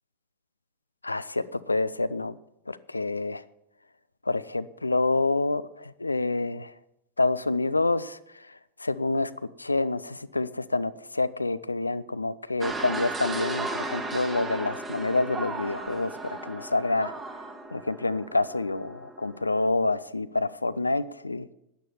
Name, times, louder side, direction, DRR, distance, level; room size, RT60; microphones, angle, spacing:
voice 1, 1.0-2.4 2.7-3.4 4.3-6.7 7.2-8.2 8.8-9.3 9.6-17.1 17.7-21.5, left 2 dB, 80° left, 15 dB, 0.5 m, -27 dB
sound 1, 12.6-19.7, right 2 dB, 15° right, 1.6 m, -36 dB
12.5 x 9.3 x 6.9 m, 0.85 s
figure-of-eight pair, 90°, 0 cm